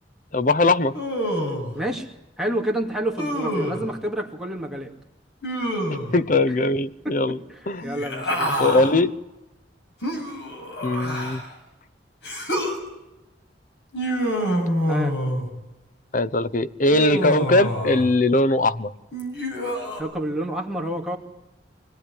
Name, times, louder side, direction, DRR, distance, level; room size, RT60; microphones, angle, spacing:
voice 1, 0.3-0.9 5.9-7.4 7.7-7.8 8.4-9.1 10.8-11.4 16.1-18.9, left 2 dB, 50° left, 13 dB, 0.9 m, -20 dB
Human voice, 0.9-1.8 3.2-3.9 5.4-6.2 7.8-8.9 10.0-11.5 12.2-12.8 13.9-15.5 16.9-18.1 19.1-20.0, equal, 70° left, 7.0 m, -27 dB
voice 2, 1.7-2.1 2.4-4.9 7.0-8.5 14.9-15.1 20.0-21.2, right 1 dB, 5° right, 0 dB, 2.5 m, -29 dB
24.5 x 18.5 x 10.0 m, 0.96 s
head